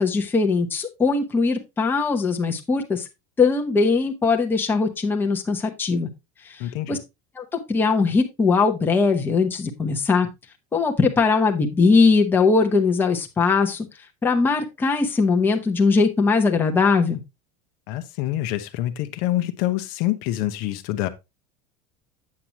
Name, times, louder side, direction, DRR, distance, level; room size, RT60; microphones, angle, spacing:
voice 1, 0.0-3.0 3.4-6.1 6.4-7.0 7.4-10.3 10.7-13.8 14.2-17.2, left 4 dB, 10° left, 0.9 m, -20 dB
voice 2, 6.6-7.0 17.9-21.1, left 14 dB, 50° left, 0.8 m, -26 dB
8.5 x 7.6 x 2.9 m
cardioid pair, 175°, 19 cm